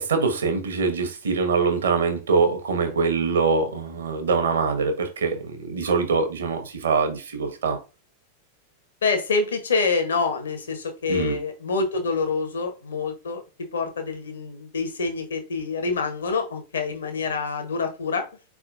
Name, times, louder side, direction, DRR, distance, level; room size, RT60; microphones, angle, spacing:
voice 1, 0.0-7.8 11.1-11.4, right 4 dB, 65° right, 1.0 m, -23 dB
voice 2, 9.0-18.3, left 4 dB, 70° left, 0.9 m, -26 dB
4.4 x 3.6 x 2.5 m
figure-of-eight pair, 90°, 0 cm